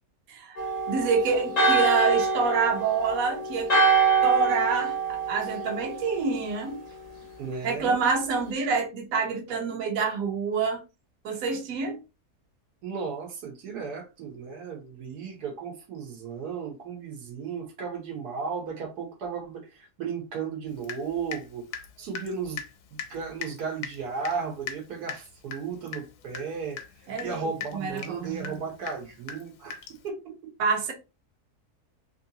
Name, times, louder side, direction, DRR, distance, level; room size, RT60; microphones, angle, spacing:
Church bell, 0.6-6.3, right 4 dB, 70° left, 0.3 m, -25 dB
voice 1, 0.9-3.7 4.2-6.8 7.6-10.8 11.2-12.0 27.1-27.5 27.7-28.6 30.6-30.9, right 4 dB, 65° right, 1.2 m, -27 dB
voice 2, 7.4-8.0 12.8-21.6 22.0-22.6 22.9-26.8 27.2-30.5, right 5 dB, 85° right, 1.4 m, -35 dB
Water tap faucet / Drip, 20.8-21.5 21.7-30.1, left 7 dB, 90° left, 1.2 m, -40 dB
3.1 x 2.7 x 2.7 m
omnidirectional pair, 1.7 m